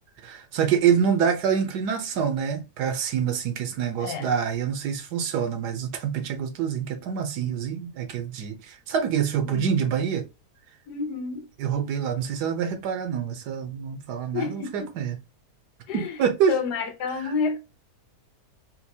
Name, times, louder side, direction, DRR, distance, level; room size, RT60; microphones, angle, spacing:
voice 1, 0.2-10.2 11.6-15.2 15.9-16.6 17.2-17.3, right 7 dB, 85° right, 1.3 m, -26 dB
voice 2, 4.0-4.3 9.4-9.8 10.9-11.5 14.3-14.9 15.9-16.2 16.5-17.6, left 5 dB, 90° left, 1.4 m, -30 dB
4.4 x 2.3 x 2.7 m
omnidirectional pair, 1.7 m